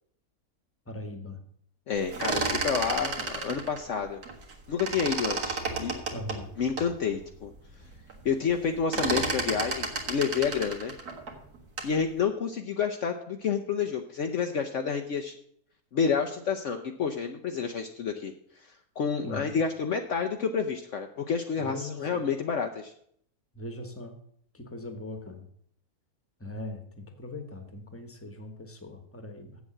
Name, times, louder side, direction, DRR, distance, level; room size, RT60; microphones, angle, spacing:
voice 1, 0.9-1.4 6.1-6.5 19.2-19.5 21.6-22.2 23.5-24.1 24.5-25.5 26.4-29.6, left 1 dB, 10° left, 6 dB, 1.2 m, -40 dB
voice 2, 1.9-4.2 4.7-6.0 6.6-7.5 8.2-10.9 11.8-15.3 15.9-18.3 19.0-22.9, left 6 dB, 60° left, 5 dB, 1.0 m, -29 dB
sound 1, 2.0-4.5 4.8-6.9 7.4-7.5 7.8-8.2 8.5-12.0, right 4 dB, 80° right, 2.1 m, -32 dB
8.1 x 7.2 x 7.5 m, 0.66 s
omnidirectional pair, 1.6 m